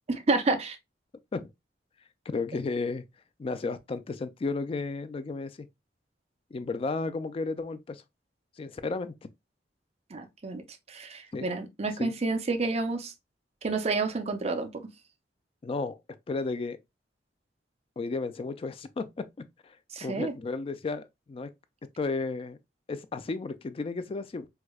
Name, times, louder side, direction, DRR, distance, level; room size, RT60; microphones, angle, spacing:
voice 1, 0.1-0.8 10.1-10.6 10.9-13.1 13.6-14.9 19.9-20.3, right 3 dB, 40° right, 0.5 m, -29 dB
voice 2, 2.3-3.1 3.4-5.7 6.5-8.0 8.6-9.1 11.3-11.5 12.0-12.1 15.6-16.0 16.3-16.8 18.0-19.7 20.0-21.5 22.0-22.6 22.9-24.5, left 3 dB, 35° left, 0.3 m, -33 dB
4.7 x 2.2 x 2.2 m
head